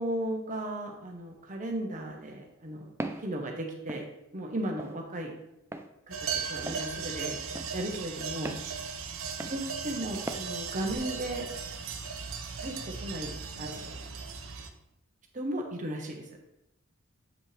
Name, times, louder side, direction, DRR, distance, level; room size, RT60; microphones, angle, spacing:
voice 1, 0.0-2.9 3.2-4.1 4.3-5.3 6.1-6.2 6.5-7.4 7.7-8.5 9.5-11.5 12.6-12.7 13.0-13.3 13.6-14.0 15.3-16.2, right 1 dB, 35° right, 2 dB, 1.1 m, -35 dB
Walk footsteps, 3.0-3.3 3.9-4.1 4.8-5.0 5.7-5.9 6.7-6.9 7.5-7.7 8.4-8.7 9.4-9.6 10.3-10.5, right 2 dB, 10° right, 0.3 m, -37 dB
sound 1, 6.1-14.7, right 5 dB, 75° right, 0.7 m, -37 dB
7.6 x 5.3 x 3.4 m, 0.88 s
head